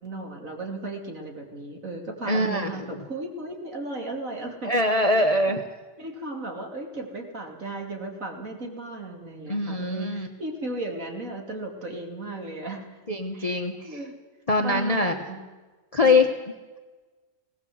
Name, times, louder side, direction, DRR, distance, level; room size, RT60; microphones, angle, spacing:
voice 1, 0.0-4.7 5.1-5.2 6.0-12.9 13.3-14.1 14.6-15.4 16.0-16.2, right 2 dB, 50° right, 2 dB, 3.2 m, -35 dB
voice 2, 2.3-2.7 4.6-5.7 9.5-10.3 13.1-14.0 14.5-15.2 15.9-16.3, left 2 dB, 25° left, 5 dB, 1.0 m, -23 dB
19.5 x 17.5 x 7.8 m, 1.3 s
omnidirectional pair, 1.8 m